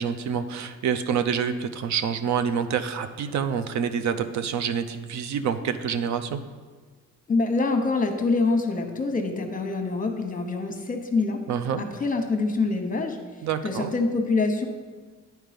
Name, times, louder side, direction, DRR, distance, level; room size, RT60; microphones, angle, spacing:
voice 1, 0.0-6.4 11.5-11.8 13.4-13.9, right 7 dB, 65° right, 10 dB, 0.6 m, -27 dB
voice 2, 7.3-11.4 11.8-13.2 13.6-14.7, left 3 dB, 25° left, 5 dB, 1.0 m, -25 dB
9.0 x 4.5 x 5.1 m, 1.4 s
cardioid pair, 90°, 30 cm